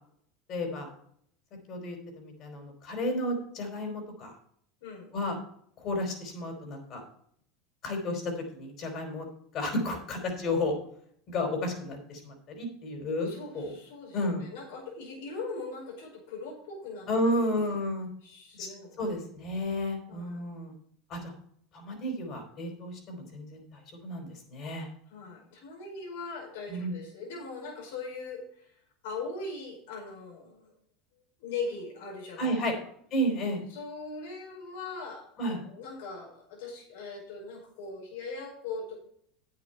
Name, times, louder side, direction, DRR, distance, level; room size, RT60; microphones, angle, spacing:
voice 1, 0.5-0.9 1.7-4.4 5.1-5.4 5.8-7.0 7.8-9.3 9.5-10.7 11.3-13.7 14.1-14.4 17.1-18.1 18.6-18.7 19.0-20.7 21.1-21.3 21.7-23.6 24.0-24.9 26.7-26.9 32.4-32.7 33.1-33.6 35.4-35.6, left 1 dB, 50° left, 4 dB, 4.4 m, -32 dB
voice 2, 4.8-5.1 13.2-17.8 18.2-19.1 20.1-20.4 25.1-28.7 29.0-30.7 31.4-32.6 33.7-39.0, left 3 dB, 75° left, -2 dB, 5.1 m, -40 dB
9.4 x 8.6 x 4.6 m, 0.66 s
hypercardioid pair, 90°, 0 cm